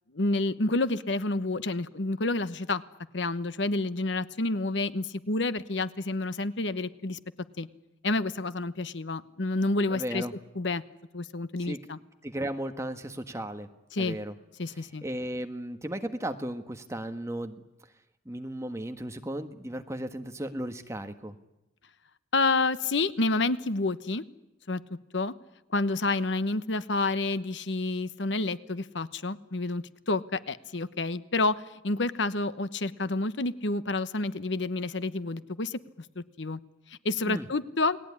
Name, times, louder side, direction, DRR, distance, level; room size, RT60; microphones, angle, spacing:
voice 1, 0.1-2.8 3.1-7.2 7.6-7.7 8.0-10.2 10.6-10.8 11.1-12.0 13.9-14.2 14.6-15.0 22.3-24.2 24.7-25.3 25.7-36.6 36.9-38.0, left 2 dB, 75° left, 14 dB, 1.1 m, -29 dB
voice 2, 9.9-10.3 11.6-11.8 12.2-13.7 14.0-14.3 15.0-17.6 18.2-21.3 37.2-37.5, right 1 dB, 15° right, 7 dB, 1.5 m, -35 dB
29.5 x 20.0 x 9.9 m, 0.94 s
head